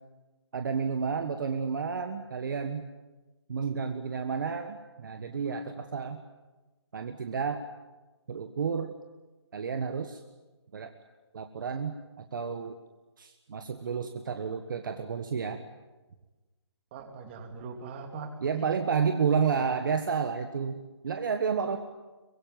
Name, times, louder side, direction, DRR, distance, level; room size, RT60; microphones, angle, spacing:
voice 1, 0.5-2.9 3.5-6.2 6.9-7.6 8.3-8.9 9.5-10.2 10.7-10.9 11.3-12.8 13.2-15.6 18.4-21.8, right 6 dB, 45° right, 7 dB, 1.5 m, -31 dB
voice 2, 16.9-18.7, right 5 dB, 25° right, 5 dB, 3.0 m, -40 dB
23.5 x 21.5 x 9.3 m, 1.2 s
figure-of-eight pair, 160°, 15 cm